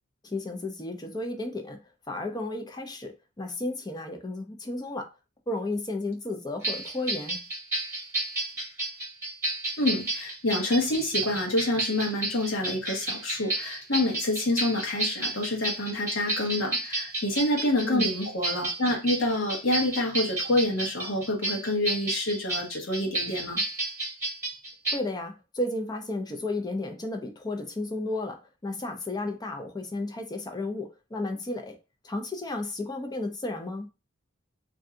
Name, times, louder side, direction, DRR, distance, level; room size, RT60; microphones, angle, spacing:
voice 1, 0.2-1.8 2.1-5.1 5.5-7.4 17.8-18.1 24.9-31.7 32.0-33.9, left 2 dB, 20° left, 0.5 m, -33 dB
sound 1, 6.6-25.0, right 2 dB, 15° right, 1.1 m, -31 dB
voice 2, 9.8-23.6, left 1 dB, 75° left, 1.0 m, -27 dB
2.6 x 2.3 x 3.7 m
head